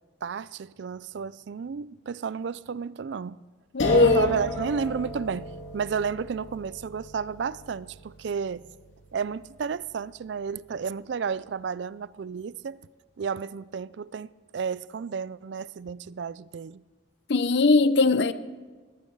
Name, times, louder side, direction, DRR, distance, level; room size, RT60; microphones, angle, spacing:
voice 1, 0.2-3.4 3.9-8.7 9.1-12.8 13.2-16.8, right 6 dB, 65° right, 0.4 m, -32 dB
voice 2, 3.7-4.3 17.3-18.3, left 3 dB, 65° left, 0.7 m, -19 dB
sound 1, 3.8-10.7, left 1 dB, 80° left, 2.4 m, -35 dB
20.0 x 14.0 x 4.7 m
head